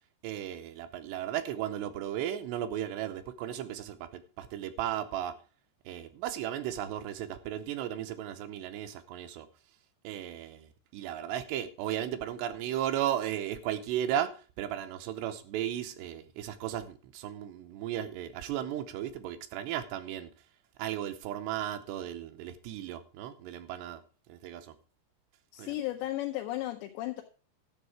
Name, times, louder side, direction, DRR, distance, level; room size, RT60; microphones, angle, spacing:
voice 1, 0.2-5.4 5.9-9.5 10.0-20.3 20.8-24.0 24.3-24.7 25.6-25.7, right 11 dB, 85° right, 3.0 m, -35 dB
voice 2, 25.5-27.2, left 16 dB, 80° left, 3.0 m, -34 dB
12.0 x 7.9 x 4.8 m
omnidirectional pair, 5.1 m